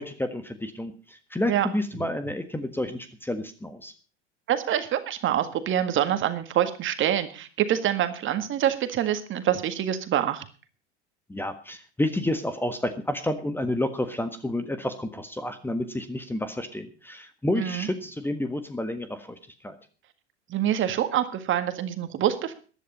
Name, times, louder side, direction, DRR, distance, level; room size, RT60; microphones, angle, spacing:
voice 1, 0.0-3.9 11.3-19.8, left 1 dB, 5° left, 10 dB, 1.5 m, -30 dB
voice 2, 4.5-10.5 17.6-17.9 20.5-22.5, right 11 dB, 35° right, 9 dB, 1.8 m, -26 dB
15.0 x 11.0 x 5.4 m, 0.38 s
figure-of-eight pair, 80°, 34 cm